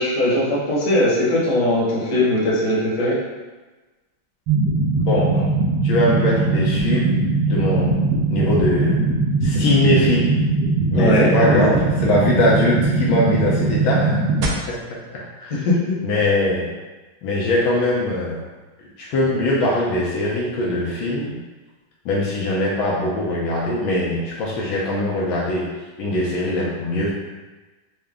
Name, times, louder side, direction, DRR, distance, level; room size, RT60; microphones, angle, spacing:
voice 1, 0.0-3.2 10.9-11.8 15.5-15.9, left 1 dB, 50° left, -6 dB, 1.2 m, -20 dB
sound 1, 4.5-14.5, right 3 dB, 65° right, 1.0 m, -20 dB
voice 2, 5.0-5.5 5.8-7.1 7.5-8.0 8.3-9.0 9.4-10.4 10.9-14.2 14.7-15.7 16.0-16.7 17.2-18.4 19.0-21.3 22.0-25.7 26.0-27.1, left 1 dB, 80° left, -4 dB, 1.4 m, -21 dB
4.7 x 2.1 x 3.4 m, 1.2 s
omnidirectional pair, 2.2 m